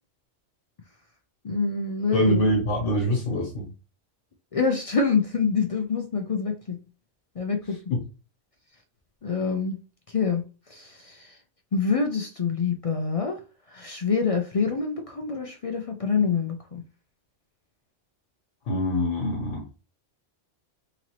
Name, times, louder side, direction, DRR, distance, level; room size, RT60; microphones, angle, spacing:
voice 1, 1.4-2.4 4.5-6.8 7.4-7.8 9.2-9.8 10.1-10.4 10.7-11.4 11.7-13.4 13.7-16.8, left 5 dB, 55° left, 0.3 m, -26 dB
voice 2, 2.1-3.7 7.9-8.0 18.7-19.6, equal, 80° left, 1.4 m, -24 dB
3.9 x 2.9 x 2.9 m
omnidirectional pair, 1.2 m